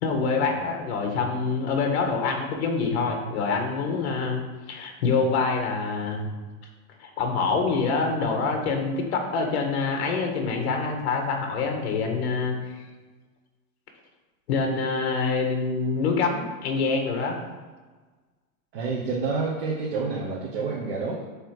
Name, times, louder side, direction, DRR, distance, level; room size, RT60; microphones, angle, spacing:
voice 1, 0.0-4.4 4.7-6.2 7.0-12.5 14.5-17.4, left 4 dB, 45° left, 3 dB, 1.6 m, -26 dB
voice 2, 18.7-21.2, right 4 dB, 40° right, -3 dB, 1.2 m, -28 dB
8.2 x 3.4 x 6.5 m, 1.3 s
supercardioid pair, 180°, 43 cm